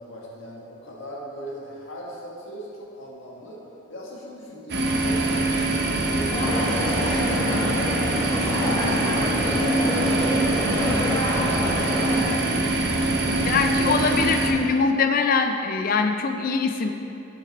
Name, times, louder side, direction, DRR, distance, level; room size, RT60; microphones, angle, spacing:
voice 1, 0.0-3.6 3.9-6.8 7.8-8.3 8.6-11.8 12.2-13.6, equal, 75° left, -4 dB, 1.5 m, -39 dB
sound 1, 4.7-14.5, right 2 dB, 55° right, 0.7 m, -24 dB
sound 2, 6.3-12.2, equal, 25° left, 1.8 m, -27 dB
voice 2, 13.5-16.9, left 4 dB, 45° left, 6 dB, 0.4 m, -23 dB
6.7 x 6.1 x 4.1 m, 2.7 s
head